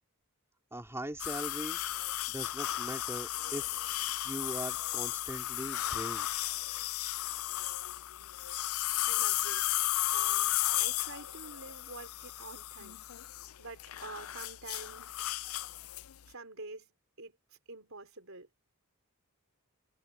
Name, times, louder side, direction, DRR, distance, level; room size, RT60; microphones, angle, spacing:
voice 1, 0.7-1.8 2.3-6.3, right 1 dB, 10° right, 3.4 m, -41 dB
sound 1, 1.2-16.1, left 15 dB, 70° left, 0.5 m, -34 dB
voice 2, 9.1-9.7 10.1-13.0 13.6-15.2 16.2-16.9 17.2-17.4 17.7-18.5, right 3 dB, 65° right, 4.4 m, -47 dB
head